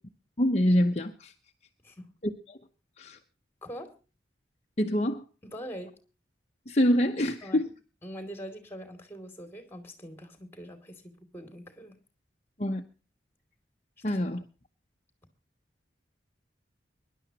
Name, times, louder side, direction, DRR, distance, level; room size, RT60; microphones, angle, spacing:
voice 1, 0.4-1.3 2.2-2.6 3.0-3.2 4.8-5.2 6.7-7.7 12.6-12.8 14.0-14.4, equal, 40° left, 3 dB, 0.9 m, -26 dB
voice 2, 3.6-3.9 5.4-6.0 7.4-7.6 8.0-12.0 14.1-14.2, equal, 15° left, 7 dB, 2.7 m, -43 dB
24.0 x 11.5 x 2.9 m, 0.32 s
head